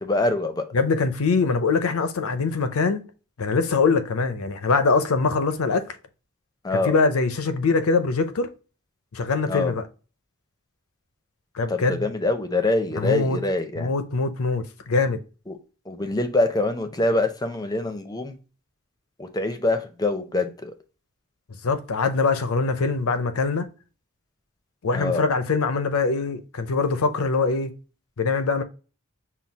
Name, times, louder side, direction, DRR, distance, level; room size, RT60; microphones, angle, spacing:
voice 1, 0.0-0.7 6.6-7.0 9.5-9.7 11.7-13.9 15.5-15.6 15.9-18.4 19.2-20.7 24.9-25.3, left 2 dB, 20° left, 0.5 m, -25 dB
voice 2, 0.7-3.0 3.4-5.8 6.7-8.5 9.1-9.8 11.5-12.1 13.0-13.4 13.8-15.2 21.6-23.7 24.8-27.7 28.2-28.6, left 4 dB, 90° left, 0.6 m, -23 dB
5.7 x 2.3 x 3.4 m
head